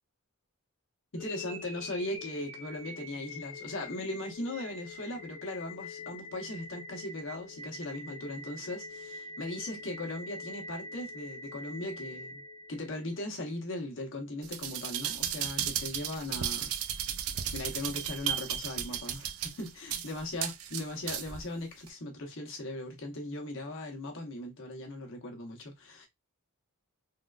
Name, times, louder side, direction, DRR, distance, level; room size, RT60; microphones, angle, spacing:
voice 1, 1.1-12.4 12.7-16.7 17.5-26.1, left 1 dB, 60° left, 1.0 m, -38 dB
sound 1, 1.2-13.2, left 2 dB, 15° left, 0.8 m, -45 dB
sound 2, 14.4-21.4 21.9-22.0, right 10 dB, 70° right, 0.4 m, -34 dB
3.6 x 2.2 x 2.4 m
head